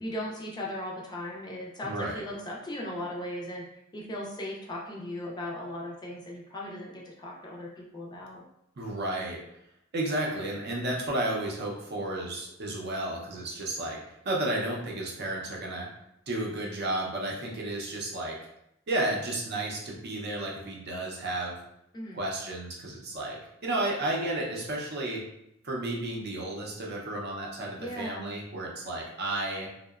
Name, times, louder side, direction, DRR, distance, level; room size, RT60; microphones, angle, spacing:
voice 1, 0.0-3.6 3.9-8.4 21.9-22.2 27.8-28.3, left 1 dB, 20° left, -3 dB, 0.4 m, -37 dB
voice 2, 1.8-2.3 8.8-9.5 9.9-15.9 16.3-18.5 18.9-21.6 22.1-25.3 25.6-29.7, right 1 dB, 55° right, -2 dB, 0.6 m, -32 dB
2.8 x 2.1 x 2.3 m, 0.81 s
head